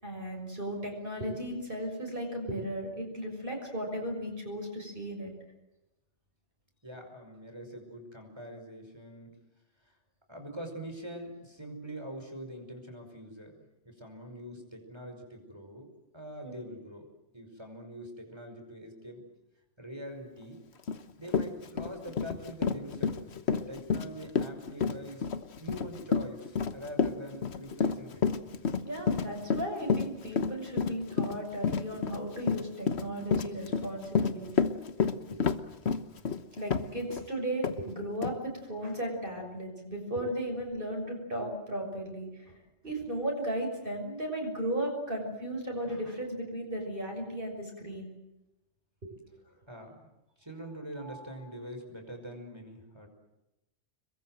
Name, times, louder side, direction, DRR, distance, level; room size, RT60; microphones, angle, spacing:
voice 1, 0.0-5.3 16.4-16.7 28.8-34.7 35.3-35.4 36.6-42.6 42.8-48.1 49.0-49.1 51.0-51.4, right 1 dB, 50° right, 1 dB, 6.5 m, -36 dB
voice 2, 6.8-9.3 9.8-10.0 10.3-15.9 16.1-17.1 17.3-19.2 19.8-20.6 21.2-23.2 23.5-25.3 25.6-28.3 49.7-50.1 50.4-53.1, equal, 25° right, 4 dB, 5.5 m, -44 dB
Run, 20.9-21.0 21.3-37.3 37.6-37.8 38.2-38.3, left 6 dB, 70° left, 1.4 m, -30 dB
28.0 x 22.0 x 7.8 m, 0.95 s
omnidirectional pair, 1.1 m